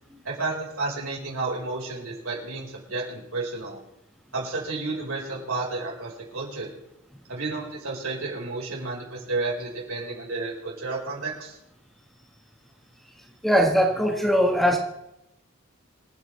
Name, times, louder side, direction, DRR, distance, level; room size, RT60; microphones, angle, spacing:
voice 1, 0.2-3.8 4.3-6.7 7.3-11.6, right 3 dB, 75° right, -2 dB, 4.8 m, -31 dB
voice 2, 13.4-14.8, equal, ahead, 1 dB, 1.5 m, -20 dB
26.0 x 8.9 x 3.3 m, 0.85 s
head